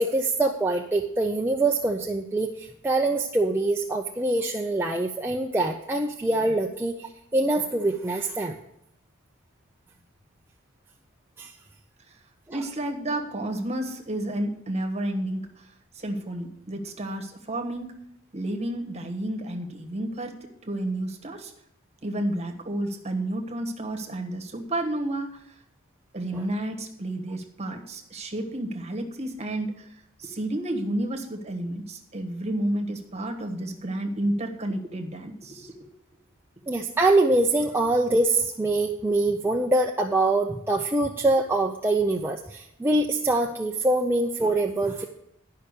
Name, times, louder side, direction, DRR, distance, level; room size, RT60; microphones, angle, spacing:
voice 1, 0.0-8.6 11.4-11.5 12.5-12.6 26.3-26.4 36.7-45.0, right 2 dB, 10° right, 0 dB, 0.5 m, -24 dB
voice 2, 12.5-17.9 18.3-21.5 22.0-25.4 26.1-29.9 30.2-35.9, right 1 dB, 30° right, 3 dB, 1.3 m, -31 dB
11.5 x 5.7 x 6.7 m, 0.78 s
head